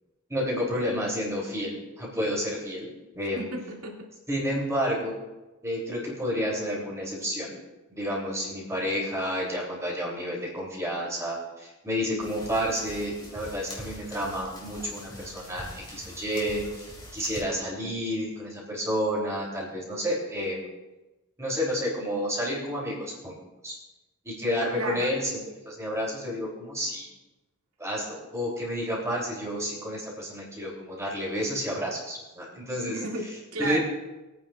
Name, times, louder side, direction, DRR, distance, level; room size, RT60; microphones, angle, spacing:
voice 1, 0.3-2.9 3.2-3.5 4.3-5.1 5.6-7.5 7.9-16.9 17.1-20.7 21.4-23.3 23.6-23.8 24.2-27.1 27.8-33.0 33.6-33.8, equal, 15° right, -4 dB, 3.1 m, -30 dB
voice 2, 3.4-4.1 24.8-25.1 32.9-33.8, right 2 dB, 70° right, -1 dB, 2.3 m, -33 dB
sound 1, 12.2-17.4, left 1 dB, 20° left, 2.7 m, -44 dB
22.5 x 9.3 x 2.4 m, 1.1 s
head